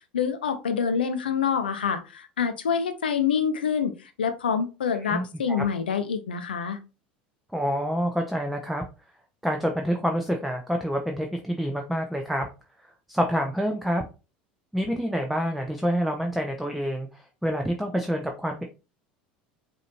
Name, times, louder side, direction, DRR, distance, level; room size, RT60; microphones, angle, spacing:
voice 1, 0.1-6.8, left 7 dB, 85° left, 8 dB, 0.6 m, -26 dB
voice 2, 5.0-5.6 7.5-8.8 9.4-12.5 13.1-14.0 14.7-18.6, equal, ahead, 3 dB, 0.6 m, -27 dB
5.2 x 2.7 x 2.7 m, 0.31 s
hypercardioid pair, 75°, 5 cm